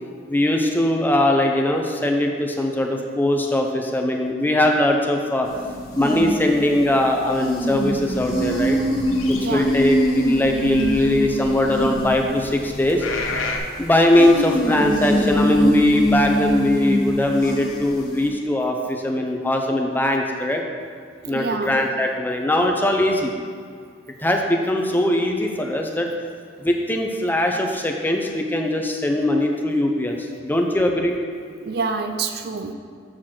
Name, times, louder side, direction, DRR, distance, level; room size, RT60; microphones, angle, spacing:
voice 1, 0.3-5.5 5.9-8.8 9.3-13.1 13.8-20.6 21.3-23.3 24.2-26.1 26.6-31.1, left 1 dB, 10° left, 2 dB, 0.5 m, -20 dB
sound 1, 5.5-13.4 14.1-18.3, equal, 45° left, 1.4 m, -24 dB
sound 2, 8.1-13.6, left 3 dB, 85° left, 0.8 m, -33 dB
voice 2, 9.2-9.7 21.2-21.8 31.6-32.7, right 4 dB, 50° right, 7 dB, 0.4 m, -27 dB
7.3 x 4.5 x 6.1 m, 2.1 s
head